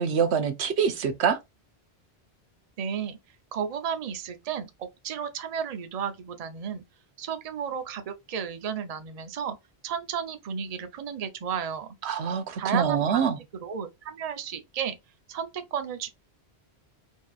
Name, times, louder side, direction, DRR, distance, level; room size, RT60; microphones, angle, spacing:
voice 1, 0.0-1.4 12.0-13.4, right 7 dB, 90° right, 1.0 m, -25 dB
voice 2, 2.8-3.2 3.5-6.8 7.2-9.6 9.8-11.9 12.6-13.3 13.6-15.0 15.3-16.1, right 7 dB, 40° right, 0.6 m, -33 dB
4.5 x 2.9 x 2.3 m
omnidirectional pair, 1.1 m